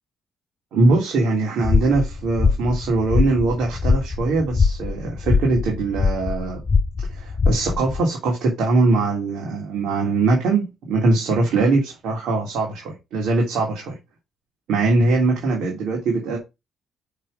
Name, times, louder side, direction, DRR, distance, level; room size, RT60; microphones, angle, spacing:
voice 1, 0.7-6.6 7.1-14.0 14.7-16.4, right 3 dB, 80° right, 3.2 m, -21 dB
sound 1, 1.6-8.0, left 4 dB, 30° left, 2.2 m, -22 dB
7.2 x 5.3 x 5.4 m
cardioid pair, 90°, 0 cm